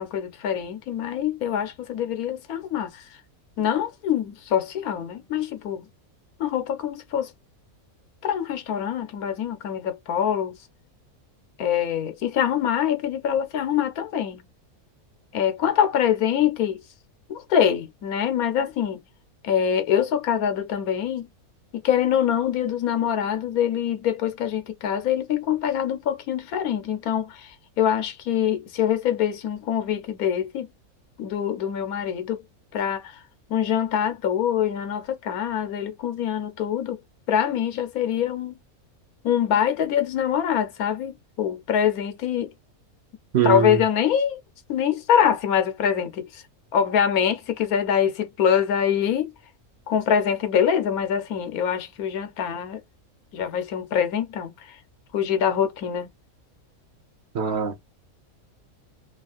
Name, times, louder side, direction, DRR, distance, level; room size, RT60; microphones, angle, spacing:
voice 1, 0.0-3.0 3.6-5.9 6.4-7.3 8.2-10.6 11.6-14.4 15.3-16.8 17.3-19.0 19.4-21.3 21.8-27.3 27.8-30.7 31.2-32.4 32.7-33.0 33.5-37.0 37.3-38.6 39.2-41.1 41.4-42.5 43.4-44.4 44.7-46.3 46.7-49.3 49.9-52.8 53.3-54.5 55.1-56.1, left 9 dB, 85° left, 1.2 m, -24 dB
voice 2, 43.3-43.8 57.3-57.8, right 8 dB, 55° right, 1.0 m, -22 dB
3.2 x 2.4 x 2.4 m
omnidirectional pair, 1.5 m